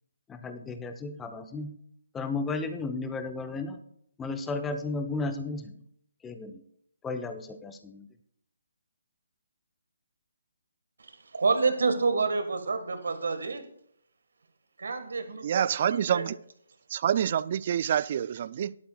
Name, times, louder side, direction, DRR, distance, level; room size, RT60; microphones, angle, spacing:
voice 1, 0.3-1.7 2.1-3.8 4.2-5.8 6.2-6.6 7.0-8.1, left 3 dB, 10° left, 0.8 m, -34 dB
voice 2, 11.0-13.6 14.8-16.2, right 4 dB, 70° right, 1.6 m, -28 dB
voice 3, 15.4-16.3 16.9-18.7, right 9 dB, 45° right, 0.4 m, -27 dB
17.0 x 11.5 x 2.4 m
figure-of-eight pair, 145°, 0 cm